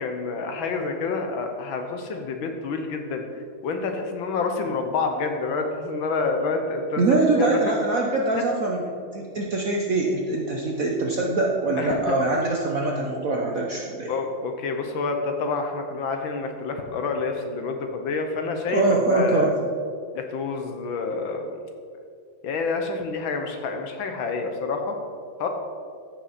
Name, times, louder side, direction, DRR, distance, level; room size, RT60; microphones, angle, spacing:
voice 1, 0.0-7.7 8.3-8.4 11.8-12.2 14.1-19.6 20.1-21.6 22.4-25.0 25.4-25.5, left 4 dB, 70° left, 5 dB, 1.6 m, -28 dB
voice 2, 7.0-8.8 9.1-14.1 18.7-19.5, right 2 dB, 55° right, -1 dB, 0.9 m, -23 dB
14.0 x 6.2 x 4.2 m, 2.2 s
omnidirectional pair, 2.4 m